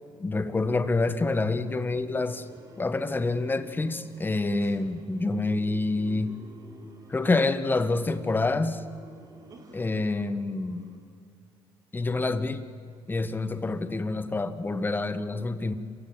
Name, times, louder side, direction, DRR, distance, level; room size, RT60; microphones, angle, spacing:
voice 1, 0.2-2.4 2.8-6.4 7.1-8.8 9.7-10.9 11.9-12.6 13.1-15.7, left 3 dB, 20° left, 12 dB, 1.5 m, -27 dB
sound 1, 1.3-11.0, right 3 dB, 40° right, 3.5 m, -51 dB
27.5 x 15.5 x 9.3 m, 2.3 s
supercardioid pair, 85°, 10 cm